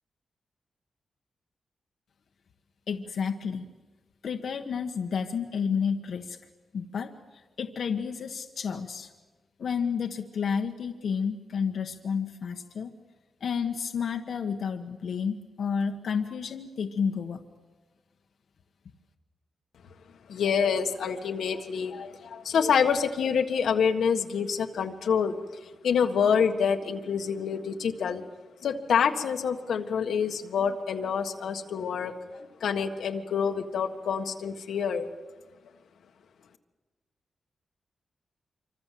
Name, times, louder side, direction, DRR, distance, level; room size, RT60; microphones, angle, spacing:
voice 1, 2.9-3.7 4.2-6.4 6.7-9.1 9.6-12.9 13.4-17.4, left 6 dB, 65° left, 4 dB, 1.3 m, -31 dB
voice 2, 20.3-25.3 25.8-28.2 28.6-35.1, left 6 dB, 85° left, 6 dB, 1.6 m, -27 dB
26.0 x 25.0 x 7.7 m, 1.3 s
wide cardioid pair, 135°, 0 cm